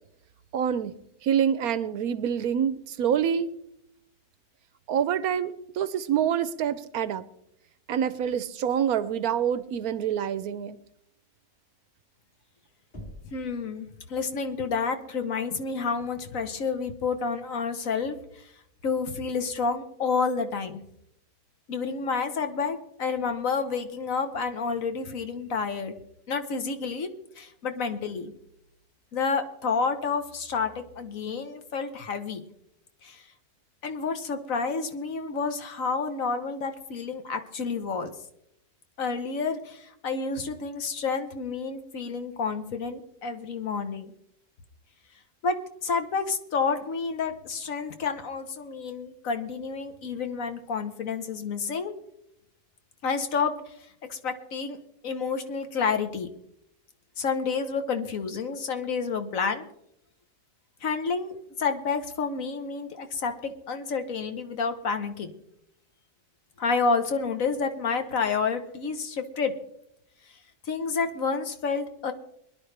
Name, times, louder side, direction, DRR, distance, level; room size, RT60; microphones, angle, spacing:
voice 1, 0.5-0.9 1.2-3.5 4.9-7.3 7.9-10.8, right 8 dB, 70° right, 14 dB, 1.1 m, -26 dB
Knock, 12.9-13.6, equal, 30° left, 3.0 m, -43 dB
voice 2, 13.3-18.5 18.8-20.8 21.7-25.9 26.3-27.1 27.4-28.3 29.1-32.4 33.0-33.2 33.8-38.1 39.0-44.1 45.4-45.6 45.8-51.9 53.0-53.7 54.1-54.8 55.0-56.3 57.2-59.6 60.8-65.3 66.6-69.5 70.6-72.1, left 5 dB, 60° left, 8 dB, 1.4 m, -29 dB
22.0 x 11.0 x 3.3 m, 0.76 s
omnidirectional pair, 1.7 m